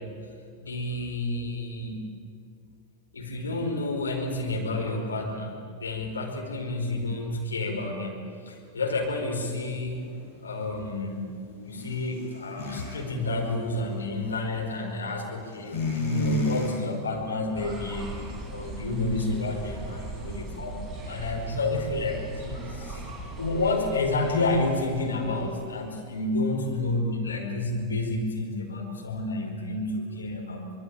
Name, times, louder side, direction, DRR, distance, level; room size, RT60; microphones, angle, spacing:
voice 1, 0.6-2.0 3.1-10.0 10.4-11.3 11.6-18.1 18.5-23.0 23.4-30.7, left 2 dB, 75° left, 0 dB, 5.0 m, -30 dB
sound 1, 9.9-13.0 13.3-14.6 15.5-16.7 17.0-17.6 17.9-18.2, left 1 dB, 45° left, 7.6 m, -31 dB
sound 2, 17.5-25.9, right 2 dB, ahead, 7.5 m, -39 dB
25.5 x 21.5 x 8.8 m, 2.3 s
figure-of-eight pair, 90°, 0 cm